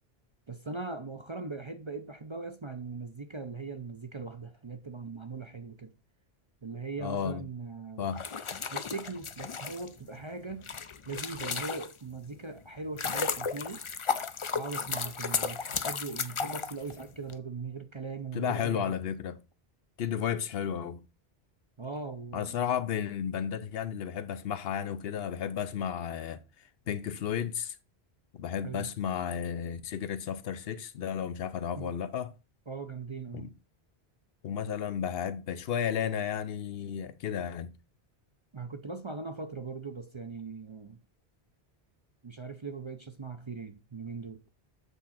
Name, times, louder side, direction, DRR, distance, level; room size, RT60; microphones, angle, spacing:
voice 1, 0.5-5.9 6.6-8.2 8.7-10.7 11.1-13.9 14.5-18.9 21.8-22.7 28.6-28.9 31.8-31.9 32.7-33.5 38.5-41.0 42.2-44.4, right 4 dB, 35° right, 0.6 m, -40 dB
voice 2, 7.0-7.4 8.0-8.2 18.3-19.4 20.0-21.0 22.3-26.4 26.9-27.8 28.3-32.3 33.3-33.5 34.4-37.7, left 8 dB, 70° left, 0.9 m, -33 dB
sound 1, 8.1-12.2 12.6-17.3, left 5 dB, 40° left, 0.5 m, -34 dB
8.2 x 3.7 x 5.8 m
omnidirectional pair, 1.1 m